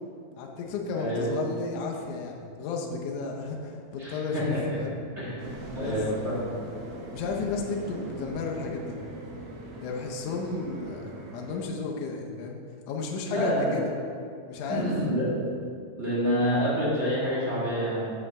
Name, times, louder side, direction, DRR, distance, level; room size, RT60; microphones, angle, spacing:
voice 1, 0.4-5.0 5.8-6.0 7.1-9.0 9.8-12.6 12.9-13.9 14.5-14.9, left 4 dB, 75° left, 0 dB, 2.0 m, -33 dB
voice 2, 0.9-1.3 4.0-4.8 5.2-5.3 5.7-6.6 13.3-13.7 14.7-15.3 16.0-18.1, equal, 30° right, -10 dB, 1.3 m, -27 dB
sound 1, 5.4-11.6, right 1 dB, 75° right, 1.4 m, -41 dB
7.5 x 5.6 x 4.1 m, 2.3 s
omnidirectional pair, 4.0 m